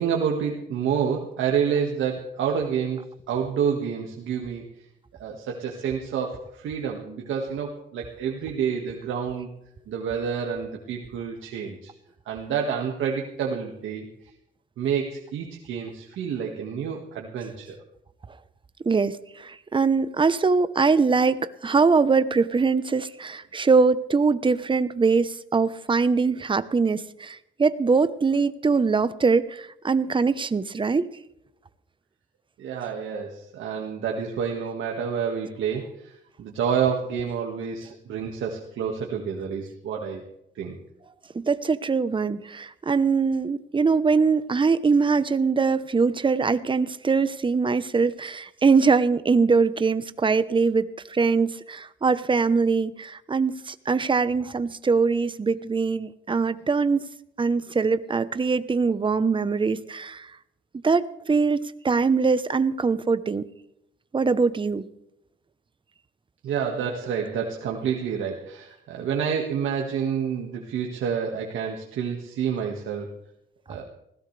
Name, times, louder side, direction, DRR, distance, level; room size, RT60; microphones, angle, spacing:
voice 1, 0.0-4.6 5.2-9.5 9.9-11.9 12.3-14.1 14.8-17.8 32.6-40.2 40.6-40.8 66.4-73.1 73.7-73.8, right 7 dB, 80° right, 0 dB, 1.9 m, -28 dB
voice 2, 18.8-31.1 41.3-57.1 57.4-60.3 60.8-63.4 64.1-64.9, right 4 dB, 25° right, 13 dB, 0.9 m, -22 dB
20.0 x 16.5 x 3.4 m, 0.79 s
cardioid pair, 90°, 20 cm